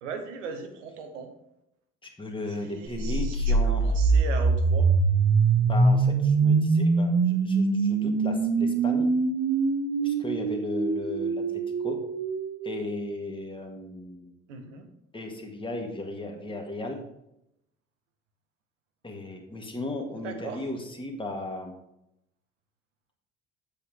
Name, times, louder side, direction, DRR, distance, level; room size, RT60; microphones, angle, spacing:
voice 1, 0.0-1.3 2.5-4.9 14.5-14.9 20.2-20.6, right 5 dB, 70° right, 6 dB, 1.2 m, -38 dB
voice 2, 2.0-4.0 5.6-9.1 10.0-11.4 11.8-12.0 12.6-14.3 15.1-17.0 19.0-21.7, left 2 dB, 15° left, 2 dB, 1.8 m, -36 dB
sound 1, 3.0-12.9, right 4 dB, 35° right, 1.1 m, -23 dB
8.6 x 7.6 x 3.5 m, 0.81 s
figure-of-eight pair, 55°, 38 cm